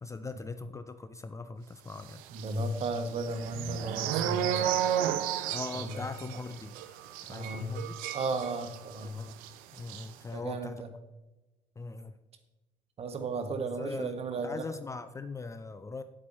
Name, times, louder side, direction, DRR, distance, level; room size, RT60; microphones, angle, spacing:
voice 1, 0.0-2.2 5.5-6.7 7.3-8.0 9.0-9.3 9.7-10.8 11.8-12.2 13.8-16.0, left 3 dB, 20° left, 0.5 m, -40 dB
voice 2, 2.3-4.7 5.7-6.1 7.3-7.7 8.1-9.2 10.3-10.9 13.0-14.6, right 2 dB, 35° right, 1.4 m, -35 dB
sound 1, 2.3-9.0 9.3-9.5 9.8-10.1, right 10 dB, 55° right, 0.7 m, -33 dB
9.9 x 8.3 x 4.3 m
figure-of-eight pair, 55°, 17 cm